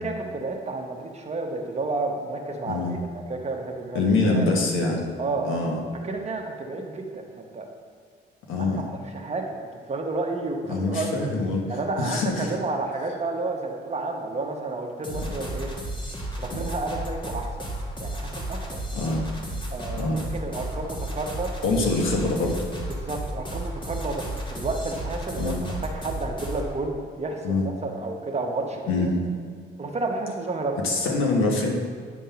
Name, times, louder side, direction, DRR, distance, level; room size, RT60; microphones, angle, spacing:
voice 1, 0.0-3.0 3.3-4.1 4.3-4.5 5.2-5.5 6.0-7.7 8.6-9.5 9.9-11.3 11.7-15.7 16.4-17.7 18.0-18.8 19.7-21.5 22.9-29.1 29.8-30.8, right 3 dB, 35° right, 2 dB, 1.1 m, -31 dB
voice 2, 2.7-3.0 3.9-5.1 5.4-5.8 8.5-8.9 10.7-12.5 15.1-15.3 16.5-16.7 18.9-19.2 19.9-20.2 21.6-22.7 25.4-25.7 27.4-27.7 28.9-29.2 30.8-31.7, left 3 dB, 85° left, 0 dB, 1.3 m, -25 dB
sound 1, 15.0-26.7, right 1 dB, 25° left, 1.3 m, -33 dB
9.3 x 3.7 x 5.7 m, 2.1 s
cardioid pair, 90°, 20 cm